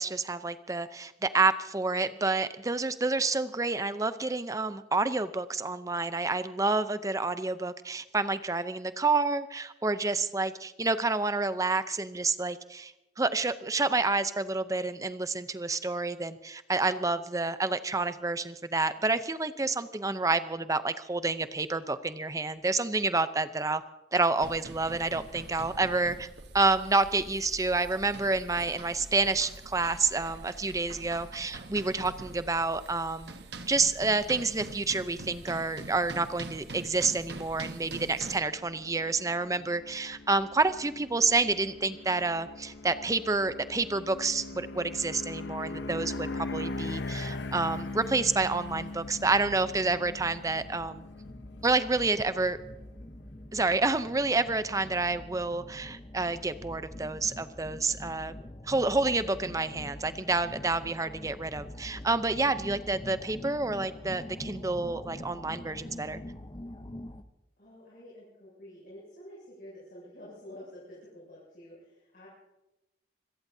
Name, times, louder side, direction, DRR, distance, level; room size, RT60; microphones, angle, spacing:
voice 1, 0.0-23.8 24.1-26.3 26.5-33.3 33.7-51.0 51.6-52.6 53.5-58.3 58.7-66.2, right 3 dB, 20° right, 12 dB, 0.6 m, -29 dB
sound 1, 24.4-38.4, right 2 dB, 70° right, 1.2 m, -44 dB
sound 2, 35.2-54.5, left 2 dB, 75° left, 0.8 m, -41 dB
sound 3, 48.4-67.2, left 1 dB, 25° left, 0.7 m, -45 dB
voice 2, 67.6-72.3, left 1 dB, 55° left, -7 dB, 7.6 m, -49 dB
26.5 x 17.5 x 2.8 m, 0.95 s
head